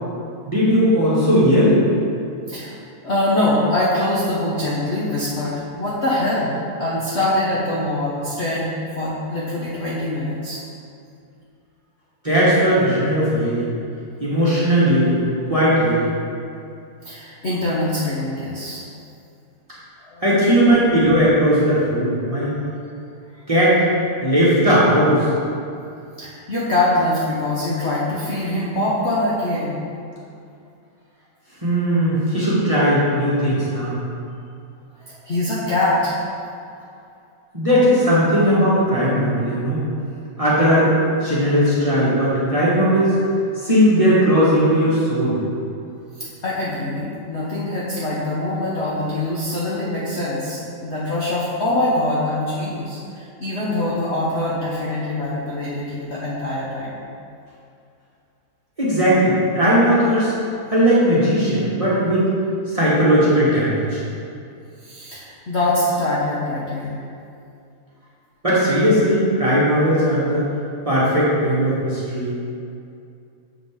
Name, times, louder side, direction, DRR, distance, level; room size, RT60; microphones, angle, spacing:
voice 1, 0.4-1.8 12.2-13.7 14.2-15.2 15.5-16.1 20.2-22.5 23.5-23.8 24.2-25.3 31.6-34.0 37.5-39.8 40.4-40.9 41.2-43.1 43.6-45.4 58.8-60.3 60.7-62.3 62.7-64.0 68.4-70.4 70.8-72.3, equal, 20° right, -10 dB, 1.2 m, -17 dB
voice 2, 2.4-2.8 3.0-8.7 9.0-10.6 17.0-18.8 20.1-20.2 26.2-29.8 35.0-36.1 46.4-57.0 64.8-67.0, left 1 dB, 55° left, -7 dB, 0.7 m, -23 dB
7.3 x 5.1 x 3.7 m, 2.5 s
omnidirectional pair, 2.4 m